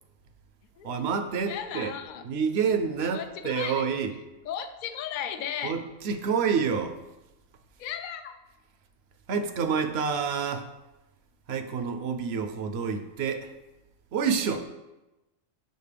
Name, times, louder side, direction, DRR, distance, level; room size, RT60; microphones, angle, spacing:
voice 1, 0.8-1.9 2.2-4.1 5.6-7.0 9.3-10.7 11.5-13.5 14.1-14.7, right 6 dB, 65° right, 8 dB, 0.8 m, -28 dB
voice 2, 1.5-2.2 3.1-3.8 4.5-5.7 7.8-8.3, left 9 dB, 65° left, 7 dB, 0.5 m, -35 dB
6.6 x 5.2 x 3.3 m, 1.0 s
omnidirectional pair, 1.3 m